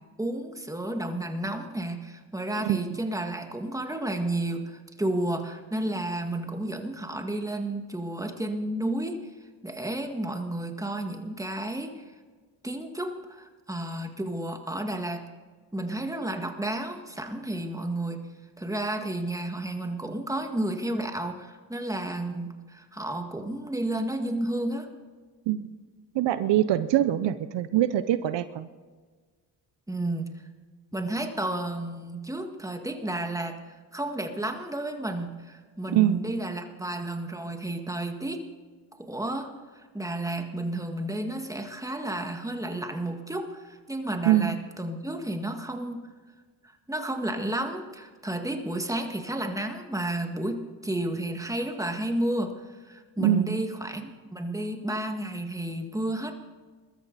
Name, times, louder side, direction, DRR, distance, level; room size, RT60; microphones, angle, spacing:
voice 1, 0.2-9.2 9.6-12.0 12.6-15.3 15.7-18.2 18.6-24.9 29.9-30.3 30.9-38.4 39.0-46.0 46.9-52.5 52.8-56.3, right 1 dB, 5° right, 5 dB, 1.9 m, -32 dB
voice 2, 2.6-3.0 25.5-25.7 26.1-28.7 35.9-36.2 44.2-44.6 53.2-53.7, right 12 dB, 70° right, 13 dB, 0.7 m, -24 dB
21.0 x 13.5 x 4.1 m, 1.5 s
supercardioid pair, 65°, 44 cm